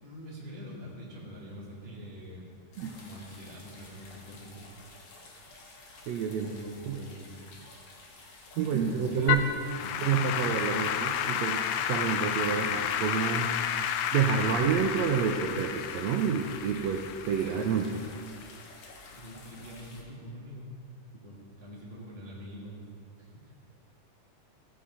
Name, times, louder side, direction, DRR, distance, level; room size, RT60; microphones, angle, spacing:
voice 1, 0.0-2.5 3.0-4.7 6.3-7.4 8.8-9.4 9.8-10.4 17.4-17.7 19.1-20.8 21.1-22.9 23.2-23.5, equal, 45° left, -6 dB, 0.7 m, -45 dB
sound 1, 2.7-20.0, left 2 dB, 65° left, 2.6 m, -51 dB
voice 2, 6.1-6.5 6.9-7.0 8.6-9.4 10.0-13.5 14.1-18.0, right 7 dB, 85° right, 2 dB, 1.5 m, -28 dB
Applause / Keyboard (musical), 9.3-18.6, left 9 dB, 85° left, 1.6 m, -31 dB
15.0 x 7.9 x 4.9 m, 2.3 s
omnidirectional pair, 3.8 m